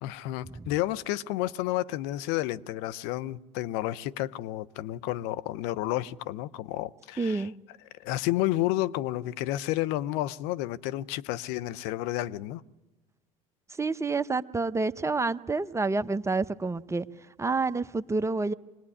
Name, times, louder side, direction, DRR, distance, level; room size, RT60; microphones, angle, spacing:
voice 1, 0.0-7.5 8.0-12.6, left 15 dB, 70° left, 0.8 m, -31 dB
voice 2, 7.2-7.5 13.8-17.1 17.4-18.5, right 3 dB, 15° right, 0.9 m, -28 dB
24.5 x 18.5 x 10.0 m
hypercardioid pair, 70°, 17 cm